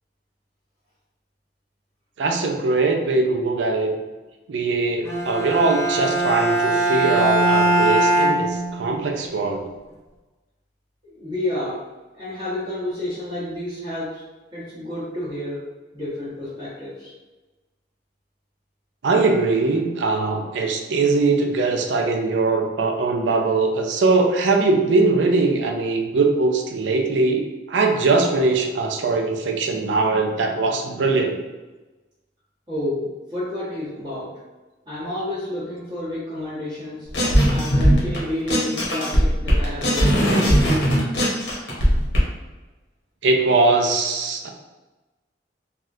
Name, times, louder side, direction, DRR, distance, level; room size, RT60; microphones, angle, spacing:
voice 1, 2.2-4.0 4.5-9.6 19.0-31.4 43.2-44.5, right 3 dB, 85° right, 3 dB, 0.4 m, -21 dB
Bowed string instrument, 5.0-9.2, right 2 dB, 15° left, 0.5 m, -21 dB
voice 2, 11.0-11.8 12.2-14.2 14.5-15.6 15.9-17.1 32.7-34.3 34.9-37.1 37.5-40.9, left 1 dB, 25° right, -12 dB, 1.0 m, -30 dB
sound 1, 37.1-38.2 38.5-42.2, equal, 75° left, 1.0 m, -18 dB
3.4 x 2.3 x 2.6 m, 1.2 s
head